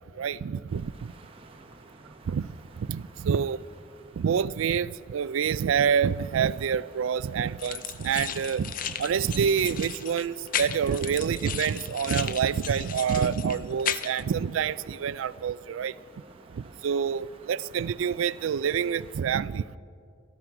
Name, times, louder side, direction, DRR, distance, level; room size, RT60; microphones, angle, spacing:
voice 1, 0.2-1.1 2.3-2.5 2.9-3.6 4.2-8.7 9.0-15.9 16.6-19.8, right 7 dB, 85° right, 19 dB, 0.4 m, -27 dB
sound 1, 0.7-19.2, right 2 dB, 30° right, 0.9 m, -52 dB
sound 2, 7.6-14.2, left 9 dB, 45° left, 0.5 m, -35 dB
19.0 x 12.5 x 4.7 m, 2.5 s
head